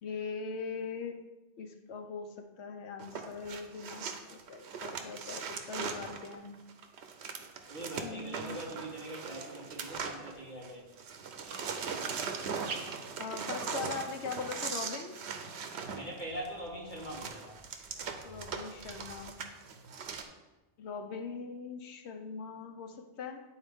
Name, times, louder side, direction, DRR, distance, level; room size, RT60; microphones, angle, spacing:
voice 1, 0.0-1.2 1.6-6.6 8.0-8.6 13.2-15.1 18.2-19.4 20.8-23.4, left 5 dB, 90° left, 6 dB, 1.0 m, -41 dB
sound 1, 3.0-10.7 11.0-20.2, right 5 dB, 85° right, 1.0 m, -40 dB
voice 2, 7.7-10.9 15.9-17.6, right 1 dB, 45° left, -6 dB, 2.4 m, -42 dB
10.5 x 4.0 x 3.5 m, 1.1 s
omnidirectional pair, 1.1 m